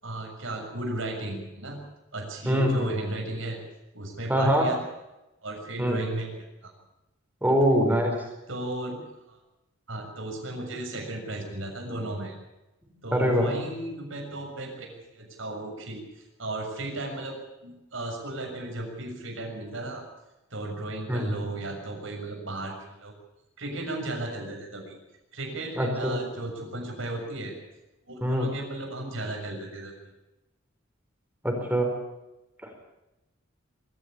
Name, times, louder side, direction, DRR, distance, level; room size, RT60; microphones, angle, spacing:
voice 1, 0.0-1.8 2.1-3.6 3.9-4.7 5.4-6.7 7.9-8.0 8.5-9.4 9.9-12.4 13.0-17.4 17.6-20.0 20.5-23.1 23.6-25.0 25.3-27.5 28.1-29.9, right 2 dB, 70° right, 2 dB, 6.8 m, -35 dB
voice 2, 2.5-2.9 4.3-4.7 5.8-6.0 7.4-8.1 13.1-13.5 21.1-21.3 25.8-26.2 28.2-28.5 31.4-31.9 32.6-32.7, equal, 10° right, 3 dB, 4.7 m, -23 dB
24.0 x 14.0 x 8.7 m, 0.96 s
head